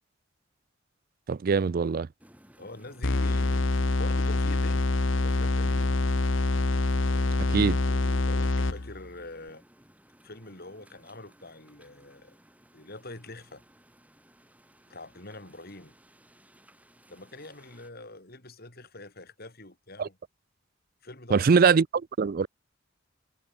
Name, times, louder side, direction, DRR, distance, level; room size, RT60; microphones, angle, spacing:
voice 1, 1.3-2.1 7.5-7.8 20.0-20.1 21.3-21.9 22.2-22.5, right 5 dB, 45° right, 0.4 m, -22 dB
sound 1, 2.2-17.9, equal, 5° right, 7.4 m, -58 dB
voice 2, 2.6-4.9 5.2-6.0 7.0-9.6 10.2-12.4 12.7-13.6 14.9-15.9 17.1-20.2 21.0-21.5, left 2 dB, 50° left, 4.8 m, -45 dB
sound 2, 3.0-9.1, left 2 dB, 75° left, 1.2 m, -25 dB
head